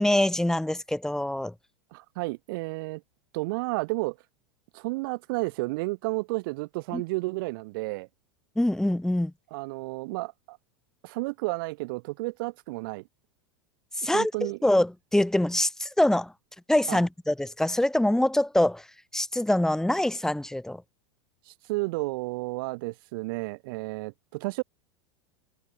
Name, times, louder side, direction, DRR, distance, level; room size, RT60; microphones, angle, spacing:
voice 1, 0.0-1.5 6.9-7.0 8.6-9.3 14.0-16.3 16.7-18.8 19.1-20.8, left 1 dB, 5° left, 3.3 m, -24 dB
voice 2, 1.9-3.0 3.3-4.2 4.7-8.1 9.5-10.6 11.0-13.0 14.1-14.6 16.9-17.0 21.5-24.6, right 24 dB, 50° right, 2.3 m, -32 dB
figure-of-eight pair, 85°, 14 cm